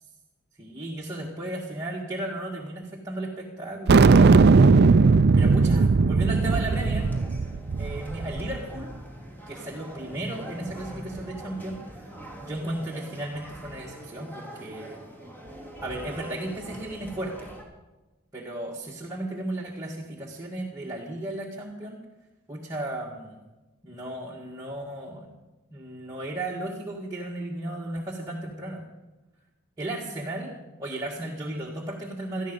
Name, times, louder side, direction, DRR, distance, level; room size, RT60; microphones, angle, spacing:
voice 1, 0.6-4.1 5.3-7.1 7.8-8.9 9.5-12.1 12.4-15.0 15.8-17.6 18.3-22.0 22.5-23.4 23.8-25.3 25.7-28.8 29.8-30.5 30.8-32.5, right 1 dB, 15° right, -4 dB, 1.9 m, -35 dB
sound 1, 3.9-8.6, right 4 dB, 50° right, 0.5 m, -18 dB
sound 2, 6.3-17.6, right 1 dB, 10° left, 3.4 m, -43 dB
18.5 x 13.5 x 5.4 m, 1.1 s
head